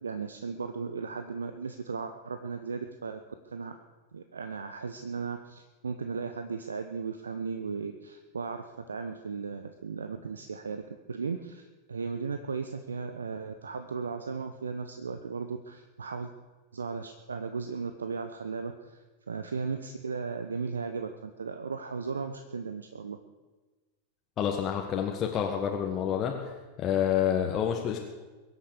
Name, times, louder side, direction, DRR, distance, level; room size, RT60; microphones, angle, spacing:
voice 1, 0.0-3.8 4.1-16.3 16.7-19.0 19.3-23.2, right 5 dB, 70° right, 8 dB, 0.8 m, -36 dB
voice 2, 24.4-26.3 26.8-28.0, left 9 dB, 30° left, 1 dB, 1.6 m, -28 dB
22.5 x 8.3 x 6.7 m, 1.3 s
figure-of-eight pair, 90°, 0 cm